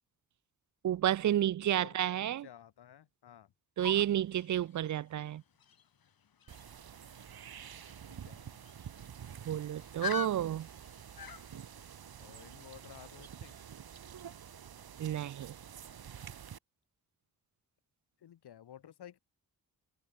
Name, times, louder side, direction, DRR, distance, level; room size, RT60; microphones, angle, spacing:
voice 1, 0.8-2.5 3.8-5.4 9.4-10.7 15.0-15.5, right 11 dB, 50° right, 0.5 m, -31 dB
voice 2, 1.6-3.5 8.1-8.6 12.2-13.6 18.2-19.2, left 10 dB, 90° left, 5.0 m, -54 dB
sound 1, 3.8-11.9, left 7 dB, 65° left, 4.7 m, -46 dB
sound 2, 6.5-16.6, right 8 dB, 70° right, 3.7 m, -49 dB
cardioid pair, 95°, 38 cm